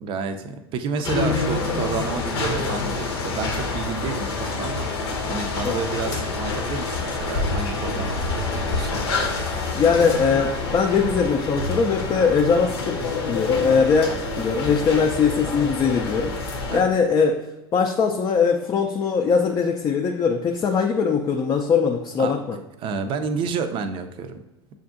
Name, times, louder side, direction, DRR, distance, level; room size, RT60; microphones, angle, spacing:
voice 1, 0.0-9.0 16.7-16.9 22.2-24.4, right 5 dB, 40° right, 8 dB, 0.4 m, -30 dB
sound 1, 1.0-16.8, left 3 dB, 75° left, 0.7 m, -27 dB
voice 2, 9.7-12.9 13.2-16.3 16.7-17.4 17.7-22.6, left 5 dB, 30° left, 2 dB, 0.4 m, -21 dB
6.6 x 2.5 x 2.5 m, 1.0 s
hypercardioid pair, 80°, 13 cm